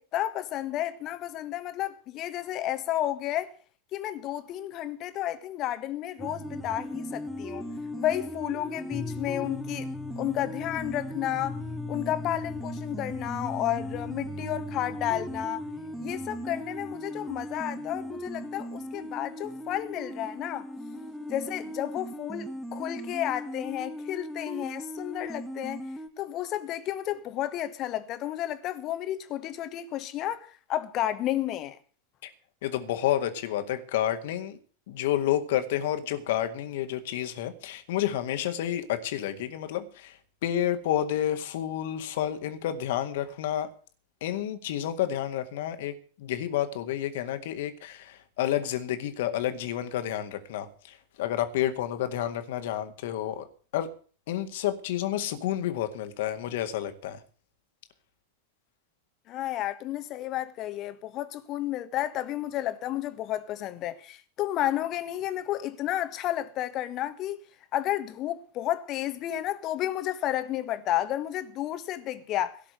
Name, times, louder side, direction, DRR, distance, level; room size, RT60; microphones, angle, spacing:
voice 1, 0.1-3.5 3.9-7.7 8.0-11.6 11.9-15.6 16.0-20.7 21.3-25.8 26.2-31.8 59.3-67.4 67.7-72.6, left 13 dB, 35° left, 1.5 m, -32 dB
sound 1, 6.2-26.1, left 1 dB, 5° right, 1.8 m, -37 dB
voice 2, 32.6-34.6 34.9-40.1 40.4-43.7 44.2-50.7 51.2-53.5 53.7-53.9 54.3-57.2, left 11 dB, 55° left, 1.9 m, -30 dB
17.0 x 5.9 x 9.5 m
figure-of-eight pair, 90°, 0 cm